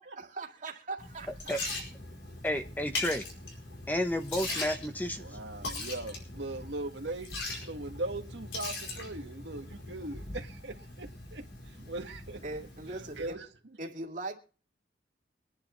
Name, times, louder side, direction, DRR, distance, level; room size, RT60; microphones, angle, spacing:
voice 1, 0.2-1.6 12.4-13.4 13.8-14.3, right 2 dB, 45° right, 2.3 m, -40 dB
Liquid, 1.0-13.3, left 2 dB, 80° left, 4.8 m, -41 dB
voice 2, 2.4-3.2 3.9-5.3, left 1 dB, 10° left, 0.9 m, -31 dB
voice 3, 5.2-7.3 7.6-11.4 11.8-12.4 13.2-13.4, right 2 dB, 80° right, 1.7 m, -39 dB
24.0 x 10.5 x 3.1 m
head